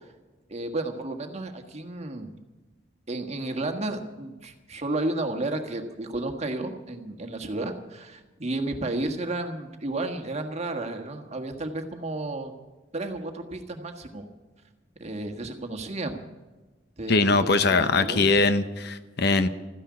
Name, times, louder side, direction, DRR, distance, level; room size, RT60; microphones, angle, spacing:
voice 1, 0.5-2.3 3.1-12.5 12.9-14.3 15.0-16.2 17.0-18.5, right 2 dB, 35° right, 5 dB, 1.6 m, -32 dB
voice 2, 17.1-19.5, left 3 dB, 60° left, 11 dB, 0.9 m, -21 dB
14.0 x 10.0 x 9.4 m, 1.2 s
head